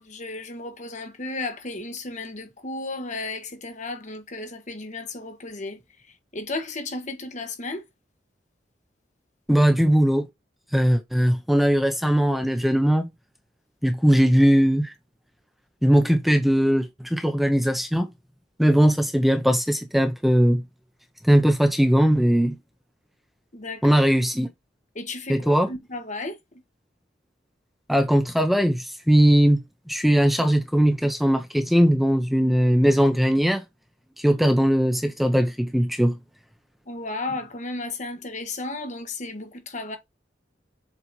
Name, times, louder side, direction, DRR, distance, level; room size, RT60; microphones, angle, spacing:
voice 1, 0.0-5.8 6.3-7.8 23.5-24.1 24.9-26.6 36.9-40.0, left 2 dB, 45° left, 1.4 m, -34 dB
voice 2, 9.5-10.3 10.7-13.1 13.8-14.9 15.8-18.1 18.6-20.6 21.2-22.6 23.8-24.5 25.3-25.7 27.9-29.6 29.9-33.6 34.2-36.2, equal, ahead, 0.8 m, -19 dB
7.3 x 3.2 x 4.1 m
head